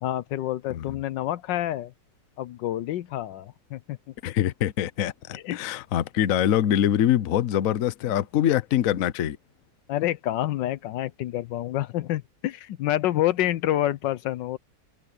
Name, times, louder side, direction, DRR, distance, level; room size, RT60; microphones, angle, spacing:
voice 1, 0.0-1.9 2.4-4.0 5.3-5.6 8.0-8.2 9.9-14.6, left 13 dB, 80° left, 1.3 m, -28 dB
voice 2, 4.2-9.4, left 11 dB, 55° left, 1.0 m, -24 dB
omnidirectional pair, 2.0 m